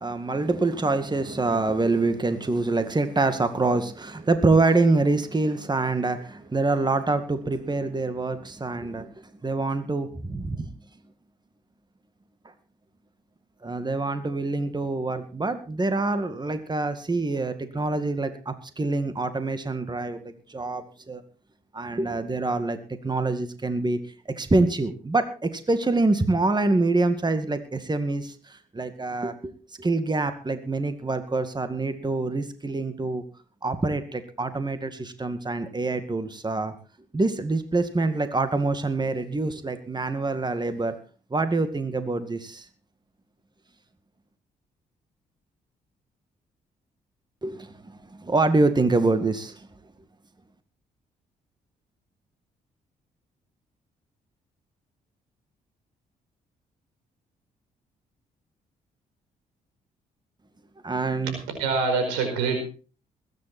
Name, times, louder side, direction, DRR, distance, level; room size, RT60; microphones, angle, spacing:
voice 1, 0.0-10.7 13.6-21.2 21.7-22.8 23.0-24.0 24.3-29.5 29.8-33.2 33.6-36.7 37.1-41.0 41.3-42.7 47.4-49.7 60.8-61.4, right 3 dB, 25° right, 9 dB, 2.1 m, -25 dB
voice 2, 61.5-62.8, right 4 dB, 90° right, 5 dB, 4.9 m, -25 dB
21.0 x 10.0 x 4.4 m, 0.37 s
hypercardioid pair, 50°, 18 cm